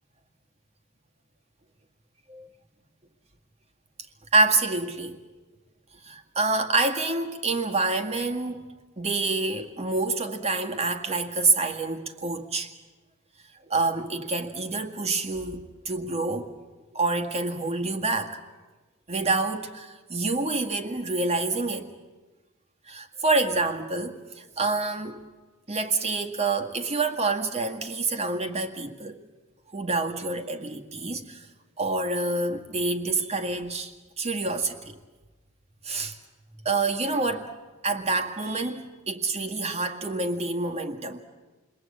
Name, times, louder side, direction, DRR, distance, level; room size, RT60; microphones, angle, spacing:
voice 1, 4.3-5.2 6.0-8.6 9.0-12.7 13.7-16.5 16.9-18.4 19.1-21.9 22.9-25.2 25.7-29.2 29.7-31.5 31.8-35.0 35.8-36.2 36.6-37.5 37.8-41.2, right 3 dB, 30° right, 5 dB, 2.0 m, -27 dB
29.0 x 21.5 x 8.6 m, 1.2 s
head